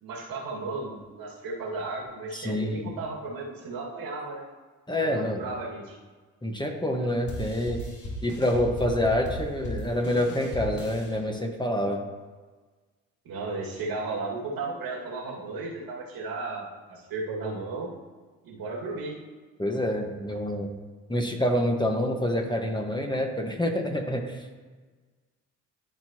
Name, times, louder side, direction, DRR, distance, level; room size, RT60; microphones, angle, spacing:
voice 1, 0.0-4.4 5.0-6.0 7.0-7.1 13.2-17.9 18.4-19.1, right 3 dB, 65° right, -2 dB, 2.2 m, -34 dB
voice 2, 2.3-2.9 4.9-5.4 6.4-7.8 8.2-12.0 19.6-20.7 21.1-24.6, left 1 dB, 10° left, 2 dB, 1.4 m, -27 dB
sound 1, 7.3-11.1, left 1 dB, 50° left, 2.4 m, -36 dB
13.0 x 4.6 x 3.0 m, 1.4 s
hypercardioid pair, 45°, 38 cm